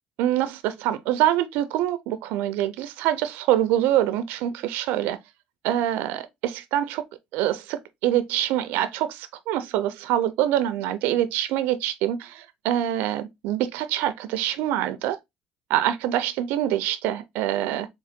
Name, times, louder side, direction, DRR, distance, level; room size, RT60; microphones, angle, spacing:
voice 1, 0.2-5.2 5.6-7.0 7.3-15.2 15.7-17.9, right 12 dB, 80° right, 0.5 m, -25 dB
3.7 x 3.0 x 3.5 m
supercardioid pair, 95°, 3 cm